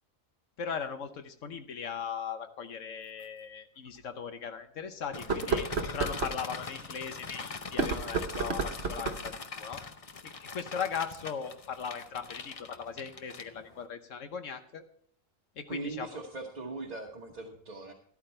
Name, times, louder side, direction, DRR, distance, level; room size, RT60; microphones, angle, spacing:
voice 1, 0.6-9.8 10.2-14.8 15.6-16.1, left 6 dB, 75° left, 9 dB, 1.3 m, -38 dB
sound 1, 2.0-2.1 3.2-3.3 3.9-4.0 5.1-6.4 7.6-9.3, right 4 dB, 55° right, 1.2 m, -32 dB
sound 2, 5.1-13.9, left 4 dB, 35° left, 0.6 m, -42 dB
voice 2, 15.7-17.9, right 3 dB, 35° right, 0 dB, 1.1 m, -40 dB
13.0 x 11.5 x 3.3 m, 0.62 s
omnidirectional pair, 1.3 m